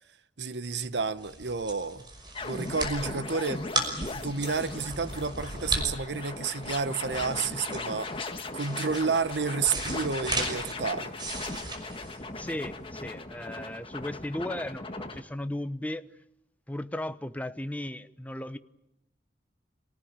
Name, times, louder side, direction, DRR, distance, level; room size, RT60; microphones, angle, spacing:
voice 1, 0.4-2.1 2.4-3.7 4.1-8.1 8.5-11.1, right 5 dB, 80° right, 1.1 m, -30 dB
sound 1, 0.8-12.8, right 2 dB, 25° right, 5.8 m, -36 dB
sound 2, 2.3-15.2, left 3 dB, 30° left, 1.7 m, -38 dB
voice 2, 12.1-16.1 16.7-18.6, left 1 dB, 10° left, 0.9 m, -36 dB
27.5 x 18.5 x 8.9 m
head